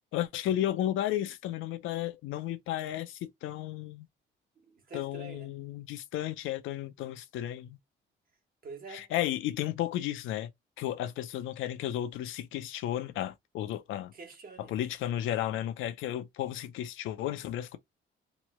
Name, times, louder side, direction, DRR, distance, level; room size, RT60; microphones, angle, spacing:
voice 1, 0.1-4.1 4.9-7.8 8.9-10.5 10.8-14.1 14.7-17.8, left 12 dB, 85° left, 0.5 m, -33 dB
voice 2, 4.6-5.6 8.6-9.1 14.1-14.8, right 3 dB, 45° right, 1.1 m, -47 dB
3.0 x 2.2 x 2.9 m
cardioid pair, 90°, 20 cm